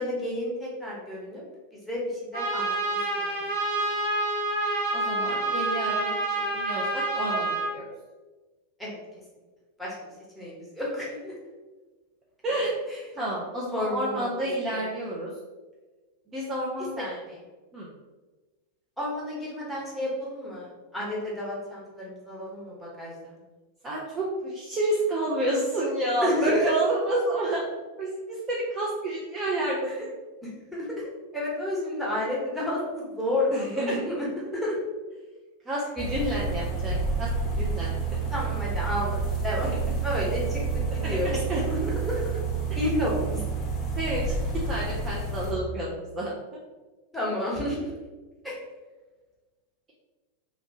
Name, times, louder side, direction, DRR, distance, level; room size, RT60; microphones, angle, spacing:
voice 1, 0.0-1.4 1.7-3.4 8.8-9.0 9.8-10.0 10.3-11.3 12.9-13.0 13.7-14.8 17.0-17.2 19.0-23.4 26.2-26.7 29.9-30.0 30.4-34.3 34.5-34.8 38.3-39.7 40.0-40.6 40.9-41.4 41.7-42.2 42.7-43.5 47.1-47.9 48.4-48.6, left 1 dB, ahead, -6 dB, 1.1 m, -31 dB
Trumpet, 2.3-7.7, right 2 dB, 80° right, 1.4 m, -28 dB
voice 2, 4.9-7.9 12.4-12.7 13.2-15.3 16.3-17.0 17.7-17.9 23.8-27.6 28.0-29.9 33.5-34.0 35.7-37.3 37.6-38.1 41.0-41.6 44.0-46.3, right 1 dB, 25° right, -5 dB, 0.5 m, -29 dB
sound 1, 36.0-45.5, right 4 dB, 25° left, 0.7 m, -29 dB
3.1 x 2.6 x 2.8 m, 1.2 s
figure-of-eight pair, 90°, 0 cm